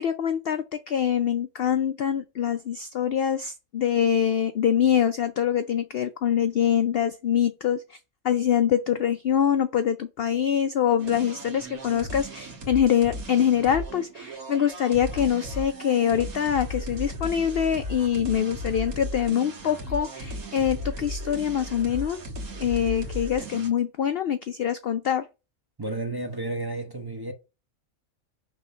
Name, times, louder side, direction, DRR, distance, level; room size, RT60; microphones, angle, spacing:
voice 1, 0.0-8.0 8.2-22.2 22.6-25.3, left 9 dB, 60° left, 0.6 m, -24 dB
sound 1, 11.0-23.7, equal, 85° right, 1.8 m, -36 dB
voice 2, 25.8-27.3, right 2 dB, 20° right, 1.0 m, -32 dB
5.6 x 3.5 x 5.5 m
omnidirectional pair, 1.5 m